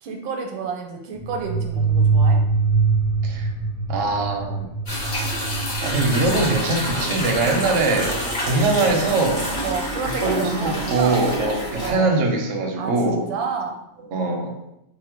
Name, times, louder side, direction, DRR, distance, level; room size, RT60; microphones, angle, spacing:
voice 1, 0.0-2.4 7.3-8.3 9.0-9.1 9.6-11.2 11.8-12.2 12.8-13.8, right 5 dB, 85° right, 3 dB, 1.4 m, -30 dB
sound 1, 1.1-9.5, right 4 dB, 20° right, 0.4 m, -24 dB
voice 2, 3.9-4.7 5.8-8.1 8.5-9.4 10.2-13.3 14.1-14.5, right 3 dB, 65° right, 1 dB, 0.8 m, -22 dB
sound 2, 4.9-11.9, equal, 30° left, 0.9 m, -28 dB
4.2 x 2.1 x 4.3 m, 0.85 s
omnidirectional pair, 2.1 m